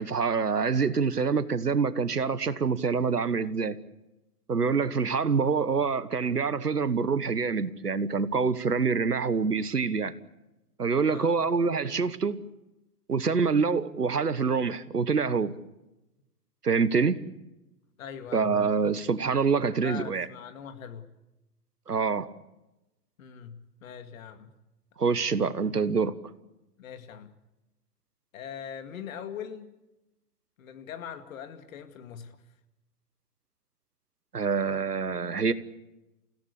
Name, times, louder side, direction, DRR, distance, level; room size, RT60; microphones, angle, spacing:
voice 1, 0.0-3.8 4.5-10.1 10.8-12.4 13.1-15.5 16.6-17.2 18.3-20.3 21.9-22.3 25.0-26.1 34.3-35.5, right 5 dB, 90° right, 1.3 m, -26 dB
voice 2, 5.4-5.9 11.0-11.3 18.0-18.8 19.8-21.1 23.2-24.6 26.8-27.3 28.3-29.7 30.6-32.4, left 8 dB, 60° left, 2.3 m, -42 dB
29.0 x 16.5 x 8.5 m
figure-of-eight pair, 110°, 46 cm